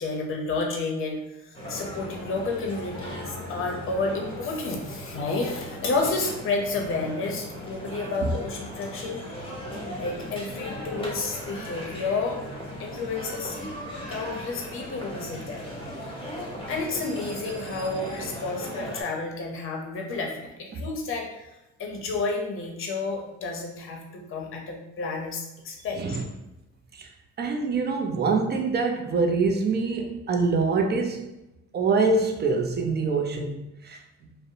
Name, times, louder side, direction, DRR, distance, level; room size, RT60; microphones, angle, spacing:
voice 1, 0.0-9.2 10.0-12.4 12.8-13.6 14.1-15.6 16.0-21.5 21.8-26.2, left 3 dB, 45° left, 1 dB, 0.6 m, -31 dB
sound 1, 1.5-19.0, equal, 20° left, 0.8 m, -37 dB
voice 2, 27.4-31.3 31.7-34.0, right 4 dB, 35° right, 3 dB, 0.4 m, -25 dB
2.5 x 2.0 x 2.7 m, 0.95 s
cardioid pair, 90°, 30 cm